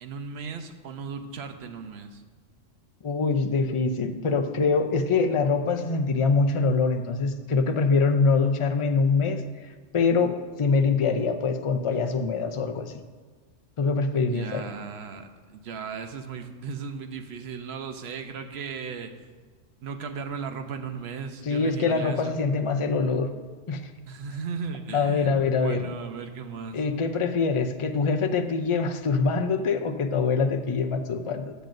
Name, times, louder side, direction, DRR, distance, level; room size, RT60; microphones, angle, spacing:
voice 1, 0.0-2.2 14.1-19.1 19.8-22.4 24.1-26.8, right 5 dB, 60° right, 6 dB, 1.0 m, -36 dB
voice 2, 3.0-9.4 9.9-12.9 13.8-14.7 21.5-23.3 23.7-23.8 24.9-25.9 26.7-31.5, left 4 dB, 40° left, 6 dB, 0.5 m, -24 dB
15.0 x 9.1 x 2.6 m, 1.4 s
omnidirectional pair, 1.3 m